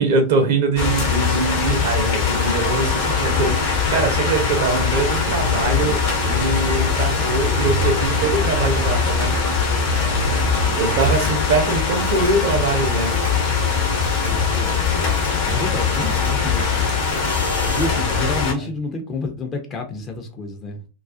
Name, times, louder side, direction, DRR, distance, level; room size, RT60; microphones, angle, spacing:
voice 1, 0.0-9.4 10.8-13.1 18.6-18.7, right 3 dB, 55° right, 0.6 m, -22 dB
sound 1, 0.8-18.5, left 5 dB, 50° left, 0.9 m, -21 dB
Truck, 4.7-11.2, right 5 dB, 20° right, 0.3 m, -29 dB
voice 2, 9.9-11.7 14.2-14.8 15.2-17.0 17.8-20.8, left 3 dB, 25° left, 0.6 m, -31 dB
sound 2, 11.0-11.3 12.0-12.3 13.0-13.3 14.0-14.3 15.0-15.3 16.0-16.3 17.0-17.9, left 1 dB, 85° left, 0.5 m, -36 dB
2.3 x 2.3 x 2.4 m
figure-of-eight pair, 90°, 0 cm